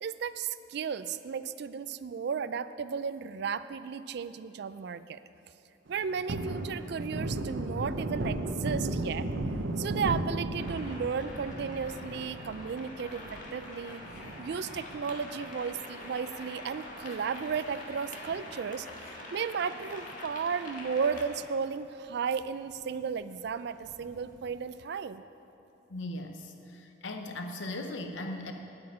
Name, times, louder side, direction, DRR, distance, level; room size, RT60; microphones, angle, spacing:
voice 1, 0.0-5.2 5.9-9.3 9.8-14.0 14.4-25.2, right 6 dB, 60° right, 13 dB, 0.4 m, -34 dB
Thunder, 5.9-16.6 17.0-17.1 17.4-18.9 19.2-19.4 19.7-20.5 20.9-21.0 21.4-21.5 23.8-24.4, right 1 dB, 80° right, 0.8 m, -36 dB
sound 1, 10.6-21.2, left 2 dB, 45° left, 1.7 m, -45 dB
voice 2, 25.9-28.5, left 2 dB, 75° left, 5 dB, 0.7 m, -38 dB
8.7 x 8.5 x 9.4 m, 2.8 s
head